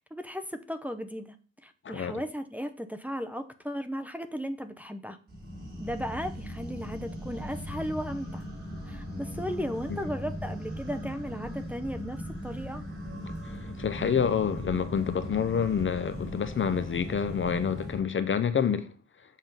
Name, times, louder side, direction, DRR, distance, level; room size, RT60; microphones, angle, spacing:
voice 1, 0.0-1.4 1.6-5.2 5.8-8.5 8.9-12.8, equal, 5° right, 0.7 m, -36 dB
voice 2, 1.8-2.2 9.9-10.0 13.5-18.9, left 7 dB, 40° left, 0.6 m, -28 dB
sound 1, 5.3-18.0, equal, 35° right, 3.6 m, -38 dB
7.3 x 3.7 x 5.5 m
cardioid pair, 95°, 29 cm